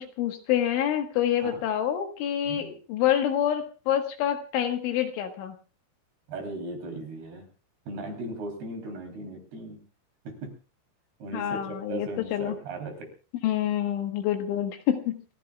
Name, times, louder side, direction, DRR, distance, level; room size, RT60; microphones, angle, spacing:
voice 1, 0.0-5.6 11.3-12.6 13.4-15.3, left 10 dB, 75° left, 6 dB, 3.8 m, -27 dB
voice 2, 6.3-7.5 7.9-9.8 10.3-10.5 11.2-13.1, right 2 dB, 55° right, 3 dB, 5.1 m, -37 dB
29.0 x 15.5 x 2.3 m, 0.35 s
omnidirectional pair, 5.8 m